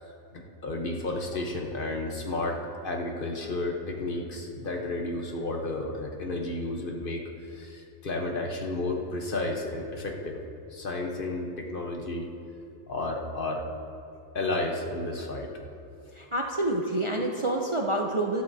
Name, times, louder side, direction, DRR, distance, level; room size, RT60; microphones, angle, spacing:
voice 1, 0.3-10.4 10.7-12.3 12.9-13.6 14.3-15.5, left 2 dB, 50° left, 1 dB, 1.2 m, -32 dB
voice 2, 16.1-18.4, right 1 dB, 35° right, 0 dB, 0.6 m, -28 dB
17.0 x 12.0 x 2.8 m, 2.6 s
omnidirectional pair, 1.2 m